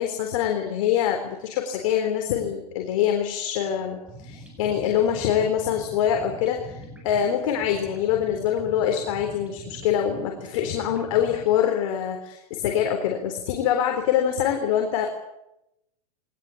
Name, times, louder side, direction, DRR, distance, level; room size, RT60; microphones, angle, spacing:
voice 1, 0.0-6.8 7.0-15.1, left 9 dB, 55° left, 3 dB, 3.9 m, -24 dB
sound 1, 4.0-11.6, right 1 dB, 5° right, 7.9 m, -43 dB
22.5 x 19.5 x 8.6 m, 0.88 s
supercardioid pair, 150°, 21 cm